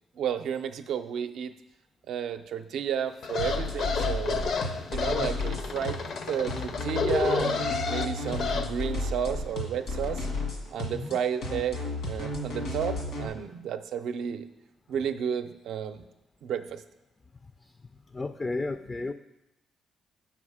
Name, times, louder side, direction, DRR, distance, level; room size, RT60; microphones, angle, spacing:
voice 1, 0.2-1.5 2.1-4.5 4.9-6.0 6.3-10.3 10.7-14.5 14.9-16.1 16.4-16.8, right 8 dB, 75° right, 9 dB, 0.5 m, -32 dB
sound 1, 3.2-8.7, left 5 dB, 65° left, 0.6 m, -30 dB
sound 2, 3.4-13.3, left 2 dB, 85° left, 1.6 m, -33 dB
voice 2, 18.1-19.1, left 3 dB, 25° left, 10 dB, 0.3 m, -34 dB
7.1 x 5.9 x 4.8 m, 0.95 s
cardioid pair, 90°, 0 cm